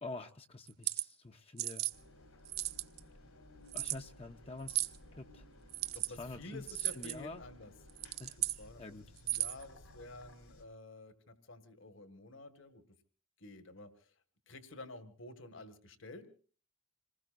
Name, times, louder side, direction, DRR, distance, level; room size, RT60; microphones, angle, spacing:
voice 1, 0.0-1.9 3.7-5.4 6.1-7.4 8.2-9.0, left 2 dB, 25° left, 5 dB, 0.7 m, -47 dB
sound 1, 0.7-1.1 1.6-1.9 2.5-3.0 3.7-4.0 4.7-5.0 5.7-6.1 6.7-7.2 7.9-8.6 9.2-9.6, right 15 dB, 45° right, 0.7 m, -35 dB
Engine, 1.9-10.6, left 1 dB, 80° left, 4.1 m, -58 dB
voice 2, 5.8-7.7 8.0-8.1 8.6-12.8 13.4-14.2 14.5-16.3, left 2 dB, 60° left, 10 dB, 1.7 m, -51 dB
27.0 x 20.0 x 2.6 m, 0.43 s
head